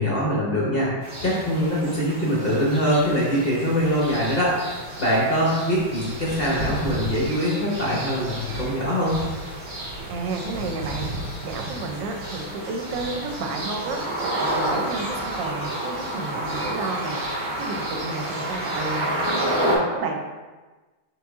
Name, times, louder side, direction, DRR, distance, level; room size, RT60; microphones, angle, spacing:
voice 1, 0.0-9.3, equal, 65° left, -6 dB, 0.5 m, -23 dB
sound 1, 1.0-19.8, right 1 dB, 50° right, 0.7 m, -30 dB
voice 2, 10.1-11.1 11.4-17.2 17.6-20.5, right 3 dB, 75° right, 3 dB, 1.2 m, -31 dB
4.1 x 3.1 x 3.5 m, 1.3 s
omnidirectional pair, 2.2 m